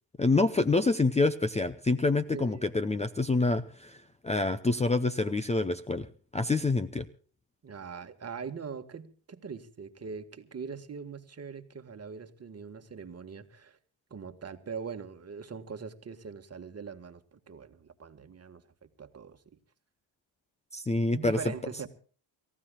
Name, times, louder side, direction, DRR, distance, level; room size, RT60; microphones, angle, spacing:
voice 1, 0.2-4.0 4.2-6.1 6.3-7.0 20.7-21.4, left 3 dB, 15° left, 0.7 m, -27 dB
voice 2, 2.3-2.7 7.6-13.8 14.1-19.4 21.1-21.9, right 5 dB, 30° right, 1.7 m, -42 dB
29.5 x 15.0 x 2.4 m
cardioid pair, 95°, 47 cm